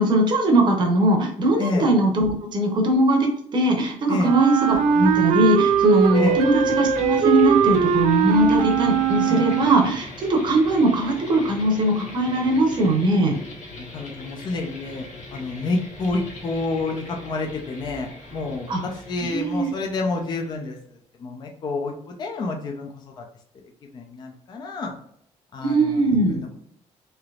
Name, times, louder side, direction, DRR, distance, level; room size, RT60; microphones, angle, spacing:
voice 1, 0.0-13.3 18.7-18.8 19.2-19.7 25.6-26.4, right 1 dB, 40° right, 1 dB, 0.8 m, -20 dB
voice 2, 1.6-1.9 4.1-4.4 6.1-6.5 9.3-9.5 13.8-20.8 21.2-22.9 23.2-23.3 23.9-24.9 25.5-26.6, left 3 dB, 35° left, 2 dB, 0.5 m, -29 dB
sound 1, 4.0-20.7, left 1 dB, 85° left, 1.0 m, -41 dB
Wind instrument woodwind instrument, 4.2-10.0, right 7 dB, 80° right, 0.4 m, -20 dB
3.3 x 2.9 x 2.4 m, 0.66 s
cardioid pair, 180°, 12 cm